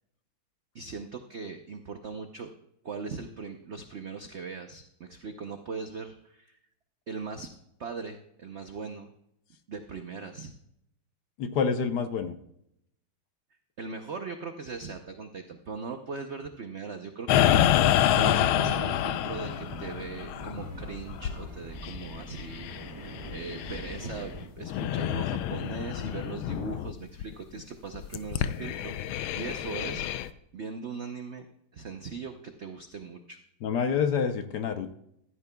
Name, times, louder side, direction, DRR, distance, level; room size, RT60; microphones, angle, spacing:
voice 1, 0.7-2.5 2.8-6.6 7.1-7.5 7.8-9.1 9.7-10.5 13.8-30.1 30.5-31.5 31.7-33.4, right 4 dB, 85° right, 6 dB, 0.6 m, -39 dB
voice 2, 11.4-12.4 33.6-35.0, left 6 dB, 65° left, 8 dB, 1.2 m, -27 dB
sound 1, 17.3-24.3 24.6-26.9 27.2-27.3 27.9-30.3, left 11 dB, 80° left, 1.4 m, -28 dB
sound 2, 17.6-24.5, equal, 20° right, 2.1 m, -43 dB
15.5 x 13.0 x 2.3 m, 0.77 s
omnidirectional pair, 2.2 m